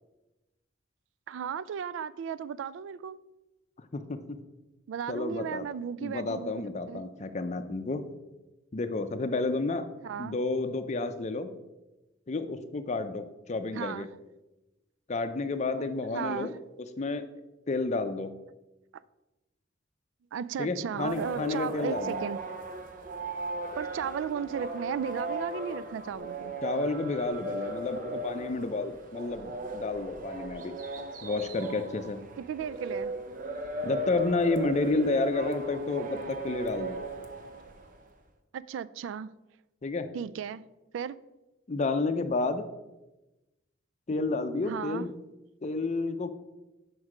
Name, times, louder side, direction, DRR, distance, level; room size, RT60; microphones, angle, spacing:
voice 1, 1.3-3.2 4.9-7.0 10.0-10.4 13.7-14.1 16.1-16.6 20.3-22.4 23.8-26.6 32.4-33.1 38.5-39.3 40.1-40.6 40.9-41.2 44.6-45.1, right 7 dB, 85° right, 0.3 m, -35 dB
voice 2, 3.9-4.4 5.1-5.7 6.0-8.1 8.7-9.9 10.2-11.5 12.3-14.1 15.1-16.5 17.0-17.2 17.7-18.3 20.6-22.2 26.6-30.7 31.2-32.2 33.8-37.0 39.8-40.1 41.7-42.7 44.1-45.1 45.6-46.3, left 3 dB, 40° left, 0.5 m, -30 dB
sound 1, 21.0-38.0, right 2 dB, 45° right, 0.7 m, -37 dB
6.3 x 4.7 x 4.9 m
head